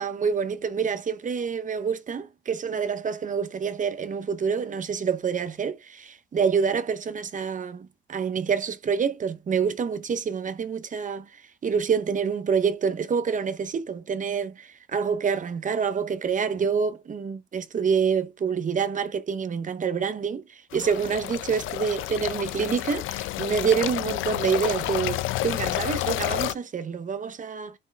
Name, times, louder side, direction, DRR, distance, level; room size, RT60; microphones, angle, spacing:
voice 1, 0.0-11.3 11.6-27.7, right 6 dB, 40° right, 0.7 m, -27 dB
sound 1, 20.7-26.5, left 15 dB, 90° left, 0.5 m, -30 dB
8.3 x 4.4 x 3.4 m
cardioid pair, 90°, 20 cm